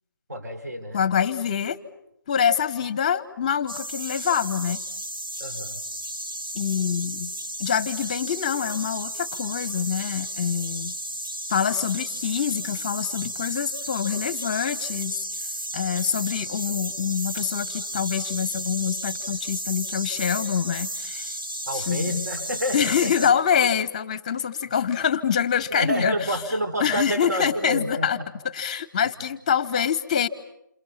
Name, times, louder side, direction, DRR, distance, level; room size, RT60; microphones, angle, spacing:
voice 1, 0.3-1.0 5.4-5.8 21.7-23.3 25.7-28.3, equal, 55° right, 6 dB, 4.8 m, -29 dB
voice 2, 0.9-1.8 2.3-4.8 6.5-7.3 7.6-10.9 11.5-15.2 15.7-21.3 21.7-22.3 22.7-26.2 26.8-28.2 28.5-30.3, left 8 dB, 20° left, 18 dB, 1.0 m, -25 dB
sound 1, 3.7-23.3, right 1 dB, 90° right, 2.1 m, -33 dB
28.5 x 28.0 x 7.0 m, 0.82 s
figure-of-eight pair, 165°, 11 cm